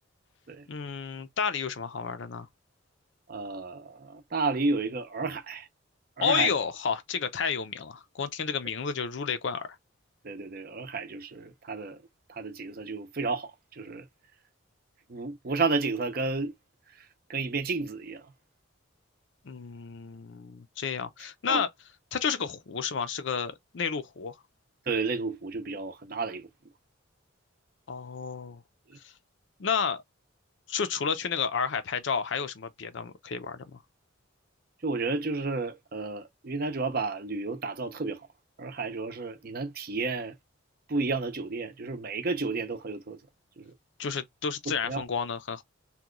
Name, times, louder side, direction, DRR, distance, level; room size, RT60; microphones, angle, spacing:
voice 1, 0.7-2.5 6.2-9.7 19.4-21.7 22.1-24.4 27.9-28.6 29.0-29.1 29.6-30.0 30.7-33.8 44.0-45.6, left 6 dB, 60° left, 0.5 m, -31 dB
voice 2, 3.3-5.7 6.2-6.5 10.2-12.0 12.3-13.5 13.8-14.0 15.1-16.5 17.3-18.2 21.5-21.6 24.9-26.5 34.8-38.2 38.6-40.3 40.9-43.2 43.6-43.7 44.8-45.0, right 3 dB, 45° right, 0.6 m, -31 dB
2.9 x 2.2 x 3.6 m
head